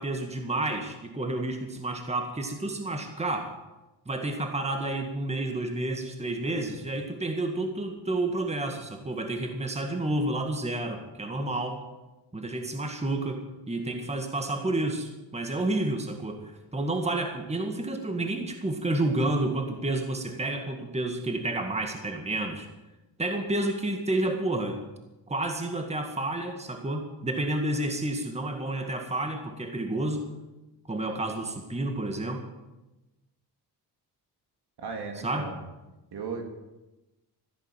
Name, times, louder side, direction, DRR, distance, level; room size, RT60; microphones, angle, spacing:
voice 1, 0.0-3.6 4.1-11.8 12.3-22.7 23.2-24.8 25.3-30.3 30.9-32.5 35.2-35.5, right 2 dB, 15° right, 4 dB, 1.8 m, -30 dB
voice 2, 34.8-35.6 36.1-36.4, right 5 dB, 65° right, 3 dB, 3.3 m, -36 dB
14.5 x 10.5 x 9.0 m, 1.1 s
wide cardioid pair, 120°, 42 cm